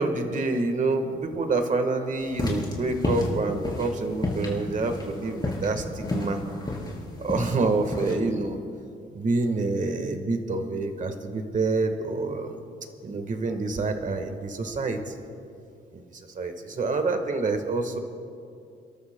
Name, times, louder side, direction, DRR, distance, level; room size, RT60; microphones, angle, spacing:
voice 1, 0.0-6.4 7.2-8.6 9.1-12.6 13.0-15.1 15.9-18.0, right 3 dB, 40° right, 7 dB, 1.4 m, -27 dB
sound 1, 2.3-8.1, left 2 dB, 20° left, 3.6 m, -30 dB
29.5 x 13.0 x 2.2 m, 2.5 s
cardioid pair, 90°, 20 cm